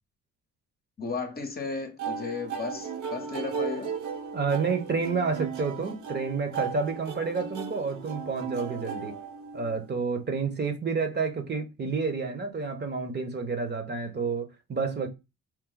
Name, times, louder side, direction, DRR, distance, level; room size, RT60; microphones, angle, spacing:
voice 1, 1.0-3.9, left 4 dB, 30° left, 0.9 m, -34 dB
sound 1, 2.0-9.9, right 6 dB, 75° right, 1.1 m, -36 dB
voice 2, 4.3-9.2 9.5-15.1, right 4 dB, 35° right, 1.0 m, -29 dB
4.6 x 2.2 x 3.8 m
cardioid pair, 90°, 30 cm